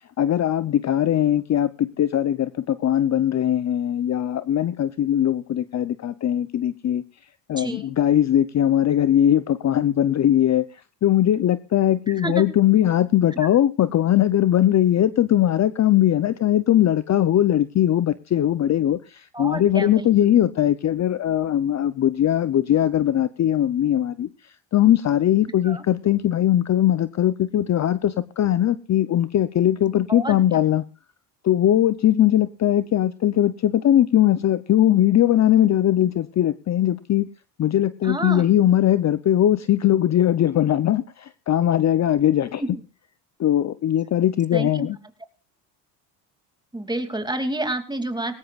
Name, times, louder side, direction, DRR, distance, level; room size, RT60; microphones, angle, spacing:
voice 1, 0.2-7.0 7.5-10.7 11.0-30.8 31.4-37.3 37.6-42.6 43.4-45.0, left 11 dB, 35° left, 14 dB, 0.7 m, -20 dB
voice 2, 12.1-12.4 13.4-13.5 19.3-20.1 25.7-25.8 30.1-30.4 38.0-38.4 42.6-42.7 44.5-44.9 46.7-48.4, right 2 dB, 10° right, 6 dB, 2.6 m, -29 dB
20.0 x 18.0 x 2.4 m, 0.32 s
supercardioid pair, 85°, 47 cm